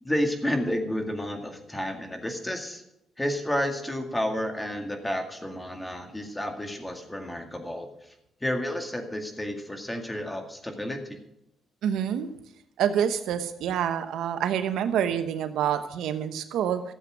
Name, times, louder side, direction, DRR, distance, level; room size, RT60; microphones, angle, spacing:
voice 1, 0.0-2.8 3.2-8.1 8.4-11.2, left 1 dB, 10° left, 5 dB, 2.1 m, -31 dB
voice 2, 11.8-12.3 12.8-16.8, right 9 dB, 80° right, 10 dB, 0.9 m, -27 dB
13.5 x 7.7 x 6.2 m, 0.83 s
cardioid pair, 90°, 0 cm